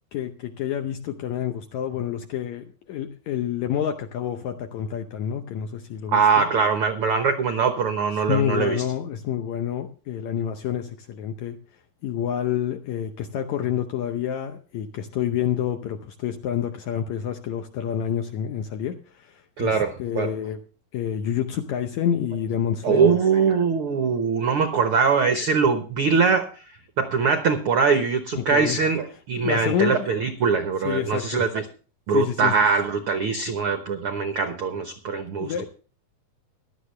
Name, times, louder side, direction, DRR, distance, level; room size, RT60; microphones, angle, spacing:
voice 1, 0.1-6.5 8.1-11.6 12.0-20.6 20.9-23.2 28.3-28.8 29.4-30.1 30.8-31.4 32.1-32.5 35.4-35.7, left 9 dB, 75° left, 7 dB, 1.8 m, -28 dB
voice 2, 6.1-8.8 19.6-20.3 22.8-26.5 27.0-31.6 32.1-35.7, right 5 dB, 80° right, 7 dB, 1.2 m, -22 dB
16.5 x 12.0 x 3.2 m, 0.36 s
omnidirectional pair, 4.2 m